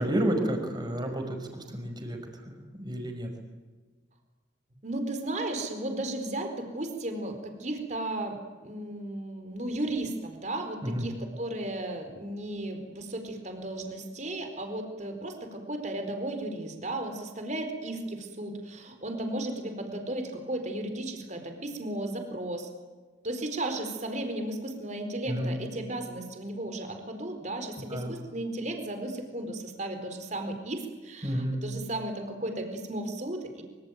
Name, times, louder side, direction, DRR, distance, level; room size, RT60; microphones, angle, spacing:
voice 1, 0.0-2.2 2.7-3.3 10.8-11.1 25.3-25.6 27.9-28.1 31.2-31.6, right 1 dB, 25° right, 4 dB, 5.7 m, -30 dB
voice 2, 4.8-22.7 23.2-33.6, right 1 dB, 40° right, 6 dB, 4.4 m, -35 dB
25.5 x 25.0 x 9.3 m, 1.3 s
head